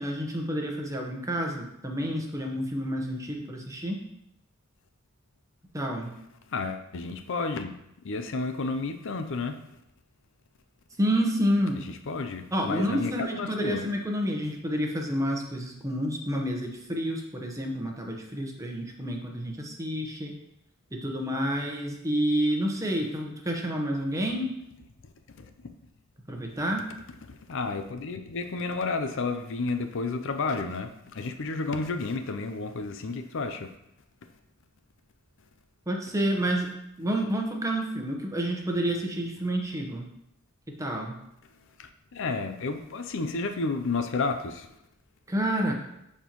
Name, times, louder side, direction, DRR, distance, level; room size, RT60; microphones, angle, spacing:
voice 1, 0.0-4.0 5.7-6.1 11.0-11.8 12.5-20.3 21.0-24.5 26.3-26.8 35.9-36.7 37.0-40.0 40.8-41.2 45.3-45.7, equal, 15° right, 1 dB, 1.0 m, -29 dB
voice 2, 6.5-7.7 8.0-9.8 11.8-13.9 25.3-25.7 27.2-33.7 41.8-44.7, left 3 dB, 65° left, 8 dB, 0.6 m, -31 dB
12.0 x 4.4 x 3.0 m, 0.82 s
head